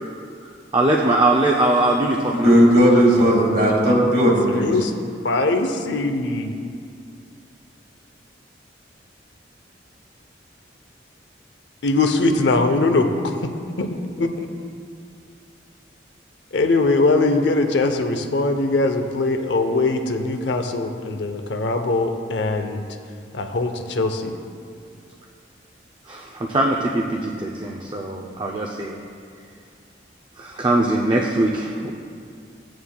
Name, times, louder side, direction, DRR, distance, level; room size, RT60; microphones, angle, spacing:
voice 1, 0.7-2.8 3.3-3.4 26.1-29.0 30.4-31.9, right 2 dB, 25° right, -1 dB, 0.5 m, -21 dB
voice 2, 2.4-4.7, equal, 55° right, -2 dB, 1.9 m, -15 dB
voice 3, 4.5-4.9 5.2-6.6 11.8-13.4 13.8-13.9 14.2-14.5 16.5-22.8 23.3-24.4, left 2 dB, 75° left, 6 dB, 0.7 m, -21 dB
14.5 x 9.4 x 2.2 m, 2.3 s
head